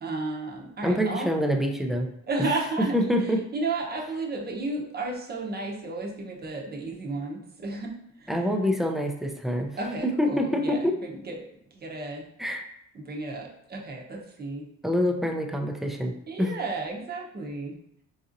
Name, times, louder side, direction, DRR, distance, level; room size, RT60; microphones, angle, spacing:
voice 1, 0.0-1.3 2.3-3.1 3.5-7.9 8.2-8.3 9.8-11.4 11.7-12.2 12.9-14.7 16.3-17.8, right 2 dB, 30° right, 0 dB, 0.8 m, -33 dB
voice 2, 0.8-2.1 2.4-2.5 2.8-3.4 8.3-9.7 10.0-11.0 12.4-12.7 14.8-16.5, equal, ahead, 3 dB, 0.4 m, -26 dB
4.0 x 2.6 x 2.5 m, 0.75 s
cardioid pair, 90°, 30 cm